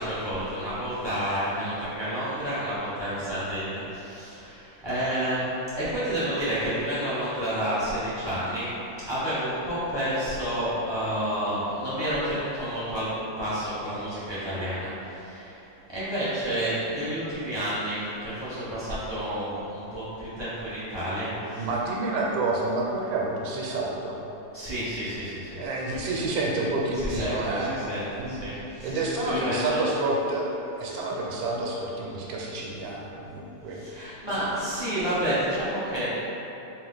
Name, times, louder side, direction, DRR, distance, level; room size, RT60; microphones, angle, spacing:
voice 1, 0.0-13.1 13.4-21.7 24.5-25.6 25.8-26.2 26.9-29.0 29.2-29.8 33.7-36.1, equal, 20° right, -12 dB, 0.7 m, -30 dB
voice 2, 21.6-24.2 25.6-27.7 28.2-28.4 28.8-30.5 30.8-33.8 34.3-34.4, right 2 dB, 85° right, -3 dB, 1.4 m, -29 dB
4.2 x 2.4 x 3.8 m, 3.0 s
omnidirectional pair, 2.1 m